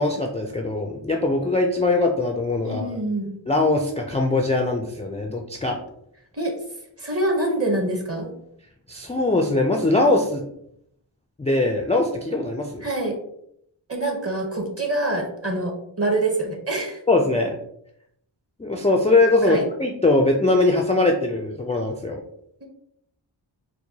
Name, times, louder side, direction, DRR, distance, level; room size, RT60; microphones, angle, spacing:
voice 1, 0.0-2.9 3.5-5.8 8.9-10.4 11.4-12.9 17.1-17.5 18.6-22.2, left 2 dB, 15° left, 2 dB, 0.3 m, -21 dB
voice 2, 2.6-3.3 6.3-6.6 7.0-8.3 12.8-13.2 13.9-17.0 19.4-19.6 22.6-22.7, right 2 dB, 30° right, 2 dB, 0.8 m, -25 dB
4.5 x 2.2 x 2.7 m, 0.73 s
wide cardioid pair, 50°, 49 cm